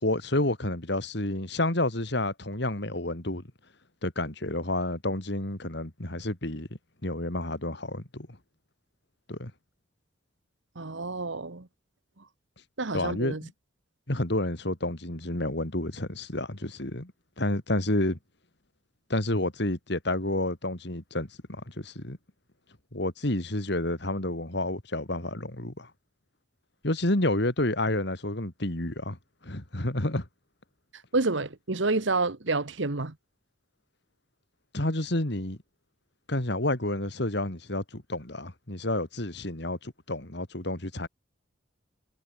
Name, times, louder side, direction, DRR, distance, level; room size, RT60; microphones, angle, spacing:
voice 1, 0.0-3.4 4.0-6.7 7.0-8.3 9.3-9.5 12.9-13.5 14.1-17.1 17.4-18.2 19.1-21.3 21.7-22.2 22.9-25.9 26.8-29.2 29.4-30.2 34.7-35.6 36.3-41.1, left 1 dB, 60° left, 2.9 m, -29 dB
voice 2, 10.7-11.7 12.8-13.4 31.1-33.1, right 3 dB, 70° right, 1.4 m, -28 dB
head